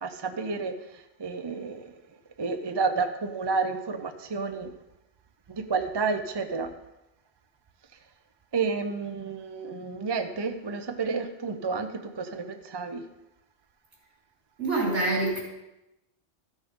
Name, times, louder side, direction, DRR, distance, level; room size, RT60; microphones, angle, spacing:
voice 1, 0.0-0.7 1.2-1.9 2.4-4.7 5.5-6.7 8.5-13.0, right 4 dB, 30° right, 7 dB, 0.6 m, -30 dB
voice 2, 14.6-15.4, right 2 dB, 75° right, -3 dB, 3.6 m, -25 dB
13.5 x 6.4 x 5.1 m, 0.93 s
omnidirectional pair, 1.2 m